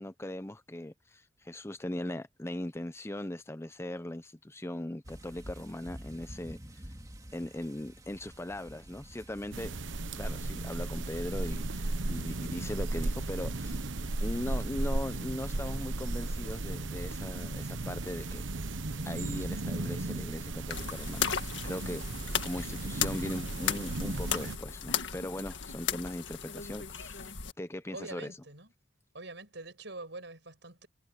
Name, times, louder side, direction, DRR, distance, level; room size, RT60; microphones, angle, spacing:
voice 1, 0.0-6.6 7.3-9.7 10.2-13.8 14.2-18.4 19.1-22.0 22.4-28.3, left 1 dB, 15° left, 0.8 m, -39 dB
sound 1, 5.0-20.1, right 1 dB, 20° right, 2.3 m, -52 dB
sound 2, 9.5-24.6, right 2 dB, 85° right, 1.1 m, -35 dB
sound 3, 20.7-27.5, left 8 dB, 75° left, 1.9 m, -35 dB
voice 2, 27.9-28.7 29.1-30.9, right 2 dB, 70° right, 7.7 m, -44 dB
head